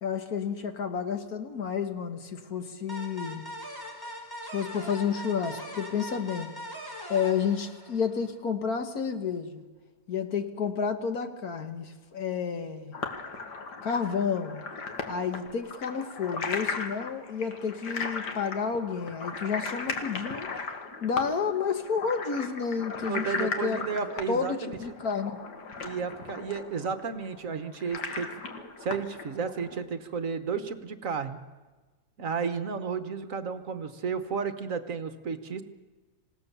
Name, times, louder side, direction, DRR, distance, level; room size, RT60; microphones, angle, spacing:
voice 1, 0.0-3.5 4.5-6.5 7.1-9.6 10.1-13.0 13.8-14.6 15.1-20.5 21.0-23.8 24.3-25.4, left 6 dB, 65° left, 7 dB, 1.8 m, -30 dB
sound 1, 2.9-8.3, equal, 10° left, 3.4 m, -41 dB
sound 2, 12.9-29.8, left 4 dB, 90° left, 2.3 m, -37 dB
voice 2, 23.0-24.8 25.8-28.3 28.8-31.4 32.2-35.6, right 5 dB, 55° right, 10 dB, 1.4 m, -32 dB
27.0 x 17.0 x 6.9 m, 1.3 s
omnidirectional pair, 1.8 m